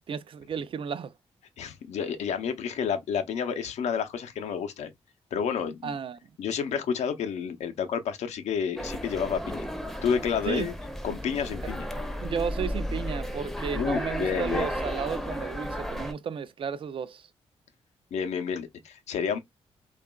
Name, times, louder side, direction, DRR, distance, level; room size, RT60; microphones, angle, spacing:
voice 1, 0.1-1.1 5.8-6.2 10.5-10.7 12.2-17.3, right 6 dB, 50° right, 0.4 m, -33 dB
voice 2, 1.6-4.9 5.3-6.0 6.4-9.7 10.0-10.7 11.0-11.9 13.7-14.7 18.1-19.4, left 7 dB, 85° left, 0.6 m, -30 dB
sound 1, 8.8-16.1, equal, ahead, 0.5 m, -34 dB
2.8 x 2.3 x 2.2 m
cardioid pair, 90°, 11 cm